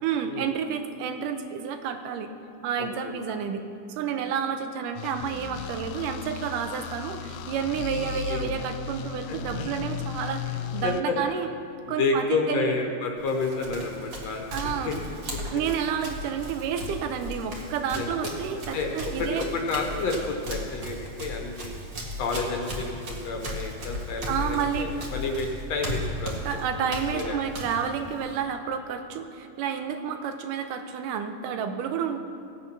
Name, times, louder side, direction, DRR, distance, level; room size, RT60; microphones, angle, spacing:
voice 1, 0.0-2.3 2.6-3.6 4.0-11.5 11.9-12.8 14.5-14.9 15.5-19.4 24.3-24.9 26.5-32.2, right 7 dB, 90° right, 7 dB, 2.4 m, -30 dB
voice 2, 2.8-3.1 8.0-8.5 9.3-9.6 10.8-11.3 11.9-15.0 15.3-15.4 18.0-18.3 18.7-21.7 22.2-26.3 26.7-27.4, left 3 dB, 65° left, 2 dB, 2.0 m, -30 dB
sound 1, 5.0-11.0, left 8 dB, 80° left, 2.0 m, -35 dB
Run, 13.2-28.4, equal, 40° right, 2.0 m, -36 dB
17.0 x 8.5 x 5.8 m, 2.5 s
omnidirectional pair, 3.7 m